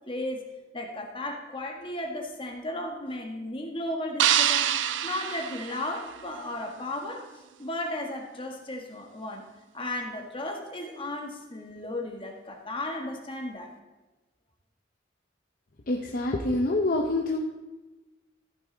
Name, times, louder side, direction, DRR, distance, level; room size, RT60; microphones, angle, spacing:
voice 1, 0.1-0.4 0.7-4.7 5.0-7.2 7.6-9.4 9.7-13.7, left 1 dB, 30° left, 2 dB, 1.5 m, -35 dB
sound 1, 4.2-6.5, right 10 dB, 75° right, 0.5 m, -26 dB
voice 2, 15.9-17.4, left 2 dB, 45° left, 2 dB, 0.7 m, -26 dB
14.5 x 8.8 x 3.9 m, 1.2 s
head